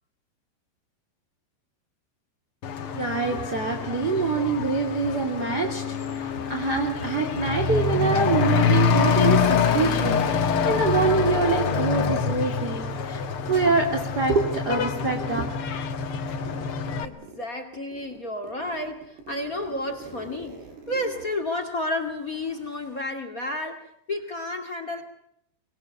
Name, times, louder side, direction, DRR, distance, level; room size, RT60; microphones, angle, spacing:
Truck / Accelerating revving vroom, 2.6-17.1, left 6 dB, 60° left, 1.4 m, -25 dB
voice 1, 2.9-5.8 6.1-15.5, right 4 dB, 25° right, 3 dB, 3.0 m, -25 dB
Zipper (clothing), 16.4-17.4 17.7-22.4, right 3 dB, 75° right, 8.3 m, -44 dB
voice 2, 17.0-20.6 20.9-23.8 24.1-25.0, left 1 dB, 30° left, 9 dB, 1.8 m, -31 dB
25.0 x 22.5 x 8.6 m, 0.73 s
omnidirectional pair, 4.9 m